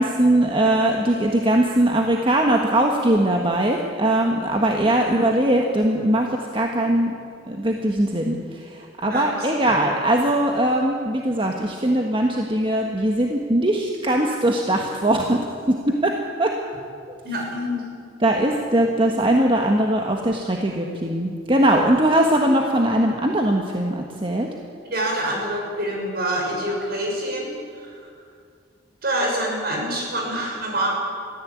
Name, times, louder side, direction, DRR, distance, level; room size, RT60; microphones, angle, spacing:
voice 1, 0.0-6.3 6.5-7.1 7.5-8.4 8.7-15.4 15.7-15.8 16.0-16.1 16.4-16.5 18.2-24.5, right 1 dB, 30° right, 1 dB, 1.5 m, -20 dB
voice 2, 9.0-9.8 17.2-17.8 24.9-28.1 29.0-30.9, right 1 dB, 55° right, 0 dB, 6.2 m, -26 dB
22.0 x 15.0 x 8.6 m, 2.2 s
head